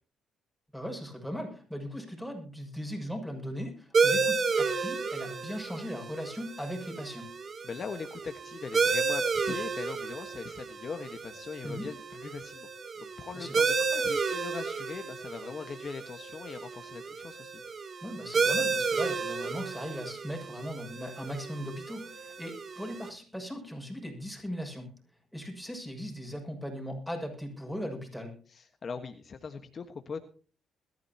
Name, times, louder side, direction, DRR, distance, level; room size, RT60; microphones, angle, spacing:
voice 1, 0.7-7.3 11.6-11.9 13.3-13.5 13.9-14.0 18.0-24.9 25.3-28.4, equal, ahead, 2 dB, 6.8 m, -38 dB
sound 1, 3.9-23.1, right 4 dB, 45° right, 1.8 m, -32 dB
voice 2, 7.6-12.7 13.0-13.8 14.0-17.6 28.5-30.2, left 5 dB, 45° left, 7 dB, 1.5 m, -40 dB
21.5 x 14.0 x 2.9 m, 0.40 s
cardioid pair, 90°, 0 cm